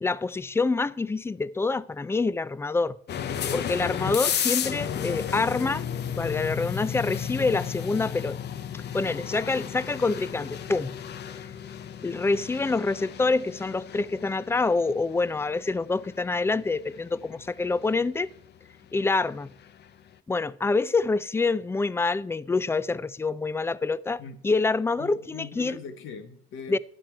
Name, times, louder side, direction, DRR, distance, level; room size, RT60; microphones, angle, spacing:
voice 1, 0.0-3.0 3.5-8.4 8.9-11.0 12.0-18.3 18.9-19.5 20.3-25.8 26.7-26.8, left 3 dB, 15° left, 0.3 m, -26 dB
sound 1, 3.1-19.9, left 8 dB, 60° left, 0.6 m, -34 dB
voice 2, 25.0-26.8, left 6 dB, 80° left, 1.1 m, -41 dB
11.5 x 7.4 x 4.4 m
cardioid pair, 90°, 20 cm